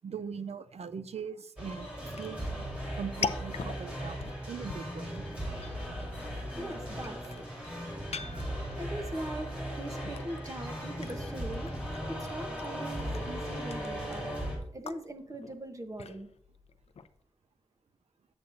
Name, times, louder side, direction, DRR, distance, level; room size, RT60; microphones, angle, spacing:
voice 1, 0.0-1.9 2.2-2.7 2.9-4.2 4.5-5.2 13.7-13.8, right 6 dB, 70° right, 12 dB, 0.4 m, -40 dB
sound 1, 1.6-14.6, equal, 10° right, 3.4 m, -38 dB
sound 2, 2.1-17.2, left 5 dB, 70° left, 0.5 m, -44 dB
voice 2, 6.6-7.5 8.7-11.7 12.1-14.3 14.7-16.3, right 1 dB, 30° right, 6 dB, 1.0 m, -41 dB
sound 3, 9.7-14.5, left 1 dB, 10° left, 1.9 m, -50 dB
8.0 x 7.9 x 2.6 m, 0.67 s
wide cardioid pair, 105°, 11 cm